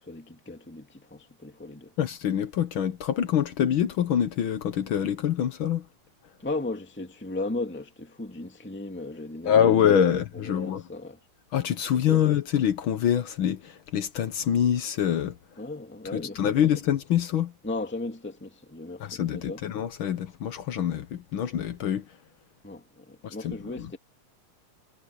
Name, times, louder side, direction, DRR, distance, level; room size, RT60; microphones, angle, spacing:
voice 1, 0.0-1.9 6.4-11.2 12.1-12.2 15.6-16.8 17.6-19.6 22.6-24.0, left 2 dB, 5° left, 1.9 m, -36 dB
voice 2, 2.0-5.9 9.4-10.8 11.5-15.4 16.1-17.5 19.0-22.1 23.2-23.9, left 9 dB, 65° left, 1.3 m, -25 dB
omnidirectional pair, 3.3 m